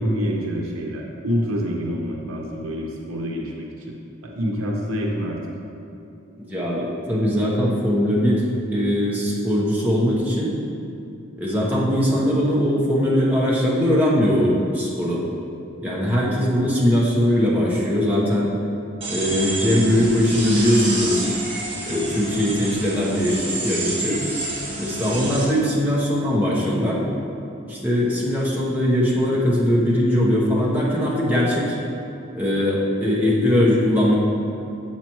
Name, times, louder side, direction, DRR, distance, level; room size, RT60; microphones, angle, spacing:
voice 1, 0.0-3.9 4.2-5.4, equal, 85° right, 0 dB, 0.7 m, -26 dB
voice 2, 6.4-10.5 11.4-15.2 15.8-18.5 19.1-21.2 21.9-23.4 23.6-24.2 24.8-27.0 27.7-31.7 32.3-34.1, equal, 10° right, -6 dB, 1.0 m, -20 dB
sound 1, 19.0-25.4, right 2 dB, 25° right, 1.2 m, -29 dB
7.8 x 5.8 x 3.0 m, 2.7 s
head